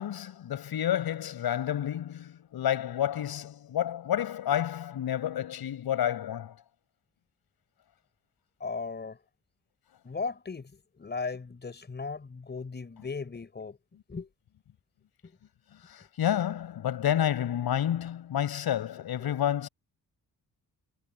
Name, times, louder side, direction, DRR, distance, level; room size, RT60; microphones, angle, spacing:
voice 1, 0.0-6.5 15.9-19.7, left 10 dB, 80° left, 6.3 m, -30 dB
voice 2, 8.6-9.2 10.0-13.8 14.1-14.3 15.2-15.3 19.2-19.3, left 4 dB, 30° left, 5.4 m, -37 dB
wide cardioid pair, 145°, 37 cm